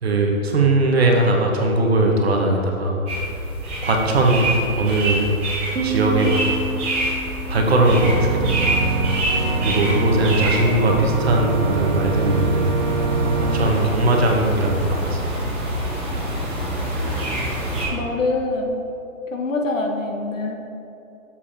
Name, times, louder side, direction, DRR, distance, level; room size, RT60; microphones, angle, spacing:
voice 1, 0.0-3.0 3.8-5.3 5.8-6.4 7.5-8.8 9.6-15.4, right 2 dB, 45° right, 1 dB, 1.0 m, -20 dB
sound 1, 3.1-17.9, right 1 dB, 10° right, 0.9 m, -26 dB
Piano, 5.8-9.2, right 3 dB, 90° right, 1.1 m, -30 dB
Organ, 7.8-13.6, right 3 dB, 30° right, 0.6 m, -24 dB
voice 2, 17.9-18.8 19.3-20.5, left 2 dB, 60° left, 2 dB, 1.1 m, -24 dB
7.1 x 4.8 x 4.3 m, 2.8 s
hypercardioid pair, 165°, 43 cm